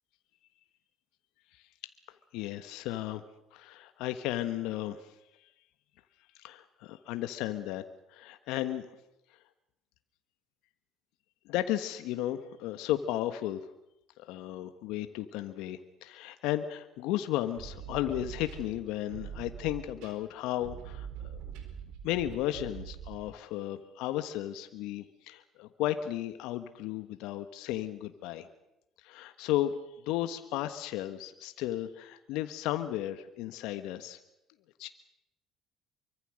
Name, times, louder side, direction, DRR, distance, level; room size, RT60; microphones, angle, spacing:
voice 1, 2.3-3.2 3.5-5.1 5.4-5.5 6.4-7.8 8.1-8.9 11.4-13.7 14.2-21.4 22.0-28.5 29.0-29.7 30.0-34.2 34.8-34.9, left 13 dB, 70° left, 9 dB, 1.4 m, -34 dB
sound 1, 17.3-23.3, right 8 dB, 70° right, 4.5 m, -43 dB
26.0 x 24.0 x 6.5 m, 0.87 s
hypercardioid pair, 60°, 0 cm